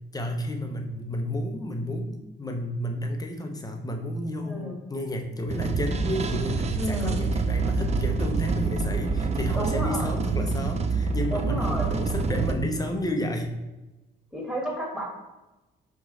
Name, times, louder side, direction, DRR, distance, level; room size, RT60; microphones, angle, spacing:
voice 1, 0.1-13.5, left 1 dB, 20° left, 4 dB, 0.7 m, -31 dB
voice 2, 4.4-4.8 6.7-7.2 9.5-10.1 11.3-11.9 14.3-15.1, equal, 5° right, -2 dB, 1.5 m, -31 dB
sound 1, 5.5-12.5, right 4 dB, 35° right, 0.4 m, -27 dB
4.5 x 3.1 x 3.7 m, 1.0 s
cardioid pair, 90°, 20 cm